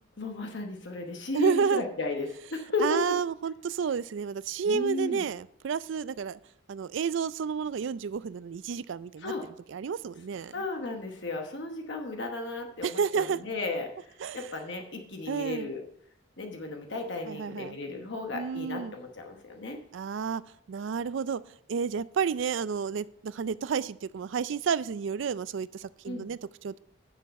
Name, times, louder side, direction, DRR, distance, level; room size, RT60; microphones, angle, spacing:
voice 1, 0.2-3.0 4.7-5.3 9.2-9.4 10.5-15.8 16.4-19.8 26.0-26.3, left 3 dB, 60° left, 3 dB, 1.1 m, -34 dB
voice 2, 1.3-1.8 2.8-6.4 6.7-9.3 9.7-10.6 12.8-13.4 14.2-14.5 15.3-15.7 17.3-17.8 18.3-18.9 19.9-20.4 20.7-26.8, right 6 dB, 70° right, 18 dB, 0.4 m, -30 dB
10.5 x 7.0 x 4.2 m, 0.71 s
head